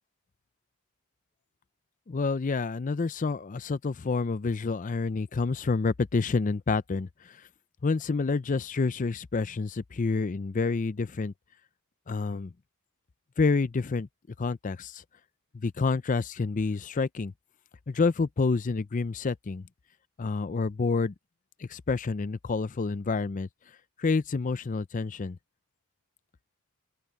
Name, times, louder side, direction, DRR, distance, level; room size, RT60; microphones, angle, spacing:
voice 1, 2.1-7.5 7.8-11.3 12.1-12.5 13.4-14.1 14.4-15.0 15.5-17.3 17.9-19.6 20.2-21.1 21.6-23.5 24.0-25.4, left 4 dB, 35° left, 0.4 m, -28 dB
open air
head